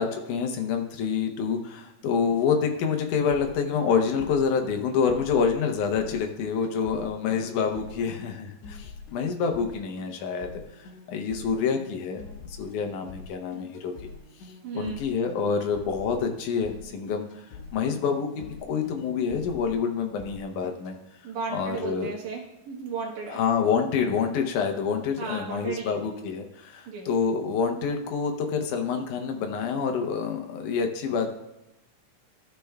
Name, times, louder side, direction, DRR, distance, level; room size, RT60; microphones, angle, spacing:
voice 1, 0.0-10.5 10.8-13.9 14.7-17.5 17.7-21.0 21.5-22.1 23.3-31.3, left 6 dB, 90° left, 4 dB, 2.4 m, -27 dB
sound 1, 3.3-21.0, left 4 dB, 70° left, 2.2 m, -45 dB
voice 2, 14.6-15.0 21.2-23.4 25.2-26.0 26.9-27.1, right 5 dB, 80° right, -3 dB, 2.7 m, -35 dB
13.5 x 6.8 x 2.3 m, 0.95 s
omnidirectional pair, 3.4 m